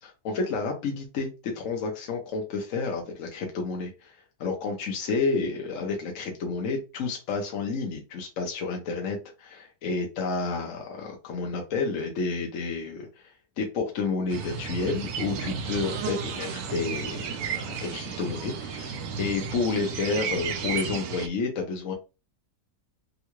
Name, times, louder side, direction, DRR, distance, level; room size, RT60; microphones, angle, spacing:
voice 1, 0.0-13.3 13.6-21.9, left 4 dB, 60° left, 1 dB, 1.0 m, -30 dB
sound 1, 14.3-21.3, right 6 dB, 75° right, 1.1 m, -33 dB
3.6 x 2.2 x 3.0 m, 0.29 s
omnidirectional pair, 1.7 m